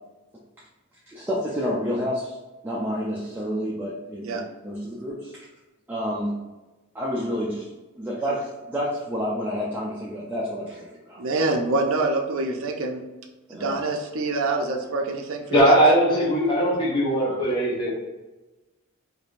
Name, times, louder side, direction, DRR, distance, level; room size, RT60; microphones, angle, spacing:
voice 1, 1.1-2.4 2.6-5.5 5.9-6.4 6.9-7.7 8.0-11.2 13.5-13.8, equal, 10° right, -6 dB, 0.4 m, -29 dB
voice 2, 11.2-13.0 13.6-15.8, right 3 dB, 65° right, 2 dB, 0.4 m, -26 dB
voice 3, 15.5-17.9, right 1 dB, 20° left, -5 dB, 0.9 m, -19 dB
4.7 x 2.6 x 2.4 m, 1.1 s
head